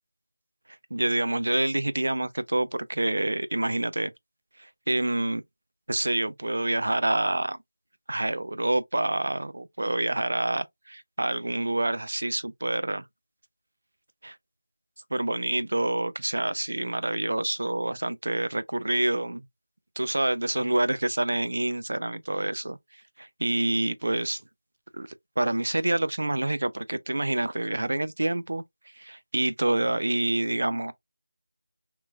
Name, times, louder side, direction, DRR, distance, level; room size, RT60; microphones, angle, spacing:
voice 1, 0.9-4.1 4.6-5.4 5.9-7.6 8.1-13.1 14.2-14.4 15.1-19.5 20.0-22.8 23.2-24.4 24.9-25.1 25.4-28.6 29.0-30.9, right 1 dB, 75° right, 0.4 m, -27 dB
3.0 x 2.2 x 2.2 m
figure-of-eight pair, 170°, 0 cm